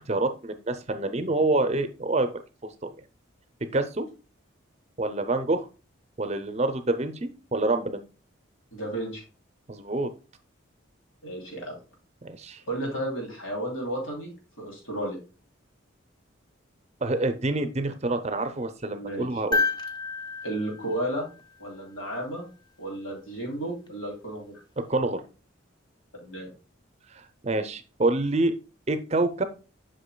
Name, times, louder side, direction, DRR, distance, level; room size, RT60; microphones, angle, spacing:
voice 1, 0.1-2.3 2.8-2.9 3.7-4.0 5.0-5.6 6.2-8.0 9.7-10.1 12.2-12.6 17.0-19.6 24.9-25.2 27.4-28.5 28.9-29.4, right 2 dB, 30° right, 9 dB, 0.5 m, -26 dB
voice 2, 8.7-9.2 11.2-11.7 12.7-14.3 14.6-15.2 18.9-19.3 20.4-21.3 21.6-22.5 22.8-24.6 26.1-26.5, right 1 dB, 80° left, 0 dB, 2.9 m, -33 dB
sound 1, 19.5-21.8 23.9-24.0, left 3 dB, 20° left, 0.5 m, -30 dB
8.3 x 5.7 x 2.2 m, 0.33 s
head